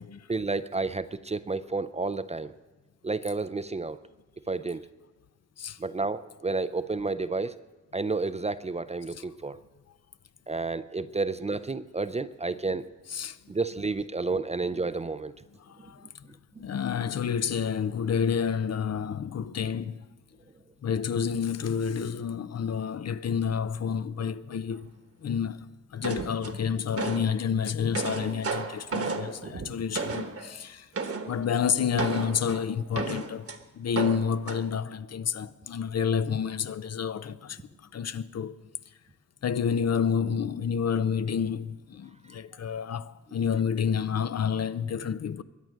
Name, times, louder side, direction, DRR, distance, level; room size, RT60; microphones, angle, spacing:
voice 1, 0.3-2.5 3.0-4.0 4.5-4.8 5.8-7.6 7.9-9.6 10.5-12.9 13.5-15.3, right 3 dB, 20° right, 0.4 m, -30 dB
voice 2, 15.7-16.1 16.6-20.0 20.8-24.9 25.2-25.6 25.9-30.9 31.3-33.5 33.7-37.6 37.9-38.5 39.4-45.4, left 7 dB, 55° left, 0.5 m, -29 dB
sound 1, 26.0-27.3 27.7-30.5 30.9-31.4 32.0-33.6 33.9-34.6, right 4 dB, 50° right, 1.2 m, -33 dB
22.5 x 9.3 x 6.3 m
wide cardioid pair, 150°, 30 cm